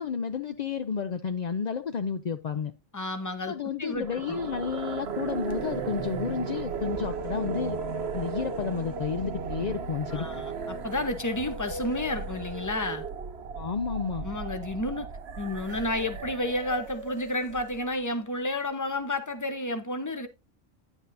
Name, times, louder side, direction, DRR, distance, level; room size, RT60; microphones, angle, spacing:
voice 1, 0.0-2.7 3.5-7.8 8.1-10.3 13.5-14.3, left 6 dB, 55° left, 0.4 m, -31 dB
voice 2, 2.9-4.4 10.1-13.0 14.2-15.1 15.4-20.3, left 1 dB, 15° left, 0.8 m, -31 dB
sound 1, 3.9-18.0, right 4 dB, 55° right, 1.0 m, -36 dB
9.8 x 8.1 x 2.6 m
omnidirectional pair, 1.3 m